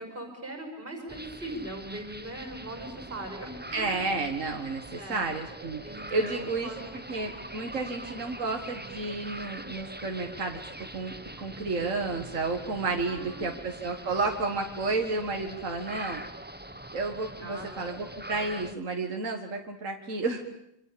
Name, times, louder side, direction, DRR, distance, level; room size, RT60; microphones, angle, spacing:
voice 1, 0.0-4.1 5.0-5.3 5.8-7.0 13.1-13.5 17.4-17.7, right 1 dB, 40° right, 4 dB, 5.9 m, -40 dB
sound 1, 1.1-18.7, right 1 dB, 10° right, 1.1 m, -43 dB
voice 2, 3.7-5.8 6.1-6.7 7.1-10.6 10.9-16.2 16.9-20.4, right 3 dB, 70° right, 2 dB, 2.2 m, -31 dB
28.0 x 25.5 x 7.0 m, 0.77 s
omnidirectional pair, 1.4 m